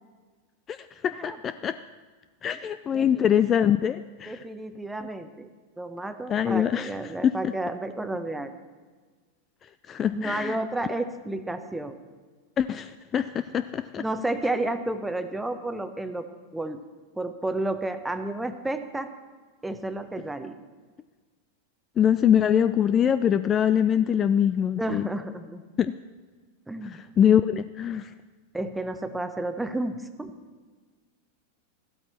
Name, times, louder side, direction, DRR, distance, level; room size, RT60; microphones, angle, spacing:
voice 1, 0.7-1.8 2.4-4.4 6.3-7.3 9.9-10.6 12.6-14.0 22.0-25.1 25.8-25.9 26.8-28.1, left 9 dB, 25° left, 13 dB, 0.3 m, -24 dB
voice 2, 2.9-3.4 4.3-5.5 5.8-8.5 10.1-12.0 14.0-16.3 16.5-16.8 17.1-19.1 19.6-20.6 24.8-25.6 26.7-27.0 28.5-30.3, right 2 dB, 5° right, 9 dB, 0.9 m, -31 dB
15.0 x 12.5 x 4.4 m, 1.4 s
figure-of-eight pair, 90°, 0 cm